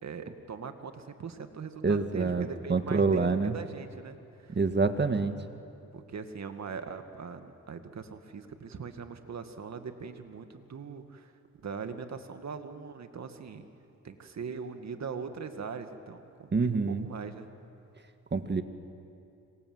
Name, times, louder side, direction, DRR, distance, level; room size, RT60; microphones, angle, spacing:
voice 1, 0.0-4.6 5.9-11.3 11.6-13.7 14.0-17.5, right 5 dB, 55° right, 7 dB, 2.2 m, -41 dB
voice 2, 1.8-3.5 4.5-5.4 16.5-17.1 18.3-18.6, right 4 dB, 30° right, 8 dB, 1.8 m, -27 dB
27.5 x 26.0 x 8.0 m, 2.7 s
cardioid pair, 85°, 33 cm